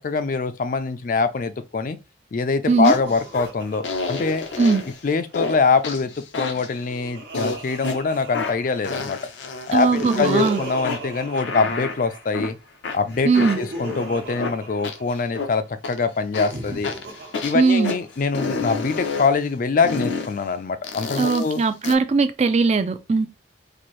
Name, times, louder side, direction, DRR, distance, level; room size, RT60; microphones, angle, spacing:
voice 1, 0.0-2.0 2.3-4.4 5.0-6.1 6.4-9.2 9.7-12.6 12.9-16.9 17.4-21.6, left 4 dB, 45° left, 0.4 m, -24 dB
Laughter, 2.6-5.3 6.4-9.0 9.7-12.4 13.0-15.4 16.3-18.4, right 1 dB, 60° right, 1.0 m, -35 dB
sound 1, 2.8-3.5 3.8-5.0 5.3-5.6 5.8-6.8 7.3-8.0 8.3-10.5 10.8-12.5 12.8-15.5 15.8-16.0 16.3-18.0 18.3-19.3 19.8-20.3 20.8-21.9, left 4 dB, 90° left, 0.6 m, -30 dB
voice 2, 9.7-10.6 13.2-13.6 17.5-17.9 21.2-23.3, right 4 dB, 40° right, 0.4 m, -19 dB
4.2 x 2.6 x 3.1 m
head